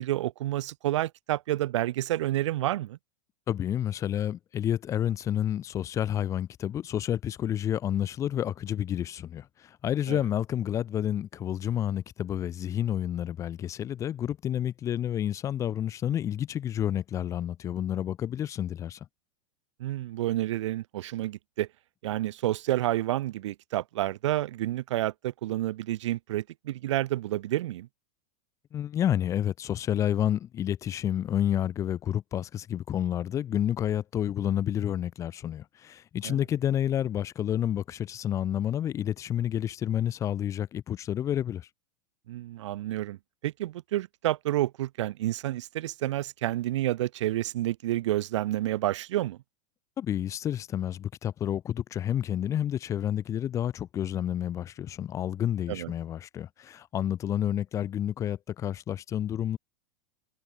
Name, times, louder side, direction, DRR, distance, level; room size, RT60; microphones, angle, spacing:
voice 1, 0.0-3.0 10.1-10.2 19.8-21.7 22.0-27.9 36.2-36.4 42.3-43.2 43.4-49.4 55.7-55.9, right 14 dB, 65° right, 2.1 m, -29 dB
voice 2, 3.5-19.0 28.7-41.7 50.0-59.6, left 10 dB, 20° left, 2.9 m, -30 dB
supercardioid pair, 175°, 16 cm